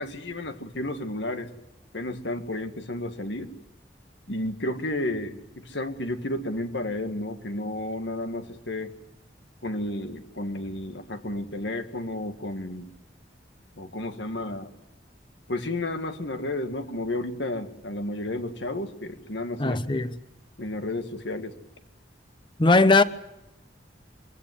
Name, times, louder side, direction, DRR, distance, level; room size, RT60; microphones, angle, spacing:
voice 1, 0.0-1.5 1.9-3.5 4.3-8.9 9.6-12.9 13.8-14.7 15.5-19.8 20.6-21.5, left 1 dB, 80° left, 2.0 m, -32 dB
voice 2, 19.6-20.1 22.6-23.0, left 3 dB, 25° left, 0.9 m, -19 dB
25.0 x 16.0 x 9.6 m
head